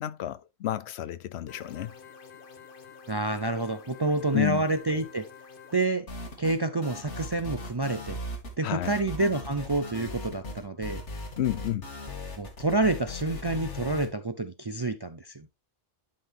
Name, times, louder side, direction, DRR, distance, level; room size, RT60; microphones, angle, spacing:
voice 1, 0.0-1.9 4.3-4.7 8.6-9.0 11.4-11.9, left 13 dB, 70° left, 0.8 m, -30 dB
sound 1, 1.5-5.9, left 6 dB, 50° left, 1.2 m, -49 dB
voice 2, 3.1-5.2 5.7-6.1 6.4-8.2 8.6-11.0 12.4-15.5, right 2 dB, 35° right, 0.4 m, -28 dB
sound 2, 6.1-6.6 6.8-8.5 8.8-14.1, left 2 dB, 90° left, 2.2 m, -38 dB
11.5 x 4.4 x 3.3 m
omnidirectional pair, 1.2 m